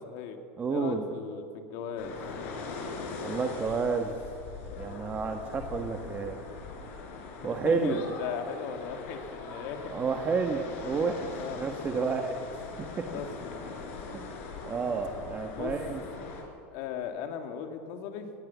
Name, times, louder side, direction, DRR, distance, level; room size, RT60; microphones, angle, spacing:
voice 1, 0.0-0.4 0.7-2.2 7.4-10.0 11.4-11.6 13.1-13.8 15.5-15.7 16.2-16.3 16.7-18.3, left 7 dB, 65° left, 5 dB, 2.5 m, -38 dB
voice 2, 0.6-1.1 3.2-4.2 4.8-6.4 7.4-8.0 9.9-13.1 14.1-14.3 14.7-16.0, right 4 dB, 25° right, 4 dB, 1.3 m, -30 dB
sound 1, 2.0-16.4, left 4 dB, 80° left, 4.9 m, -41 dB
20.0 x 18.0 x 7.2 m, 2.6 s
supercardioid pair, 135°, 7 cm